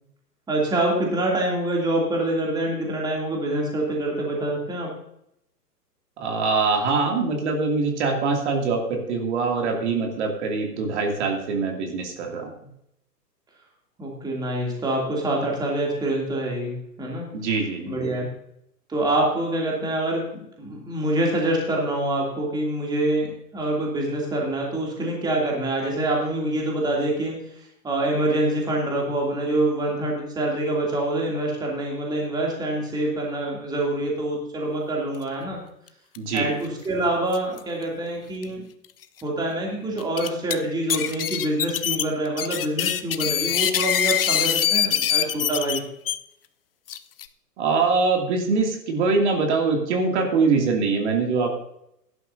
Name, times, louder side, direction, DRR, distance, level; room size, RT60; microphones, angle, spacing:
voice 1, 0.5-4.9 14.0-17.3 17.9-18.3 18.9-35.6 36.3-38.6 39.2-45.8, right 1 dB, 10° right, -2 dB, 2.7 m, -26 dB
voice 2, 6.2-12.5 17.3-18.1 36.2-36.5 47.6-51.5, right 4 dB, 45° right, 1 dB, 2.6 m, -23 dB
sound 1, 36.2-36.4 36.6-36.7 37.3-37.6 38.4-38.5 39.0-39.1 40.0-40.5 40.9-46.2 46.9-47.3, left 10 dB, 35° left, 0.5 m, -24 dB
17.0 x 11.5 x 2.7 m, 0.77 s
figure-of-eight pair, 115°, 49 cm